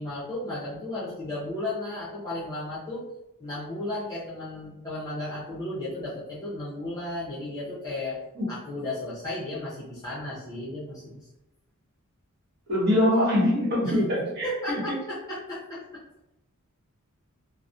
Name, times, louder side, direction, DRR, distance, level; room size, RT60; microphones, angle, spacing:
voice 1, 0.0-3.1 3.4-8.2 8.5-11.2 13.8-14.0 14.4-15.8, left 1 dB, 15° left, -10 dB, 0.6 m, -34 dB
voice 2, 12.7-14.8, left 1 dB, 50° right, -5 dB, 0.9 m, -23 dB
2.3 x 2.0 x 2.6 m, 0.89 s
head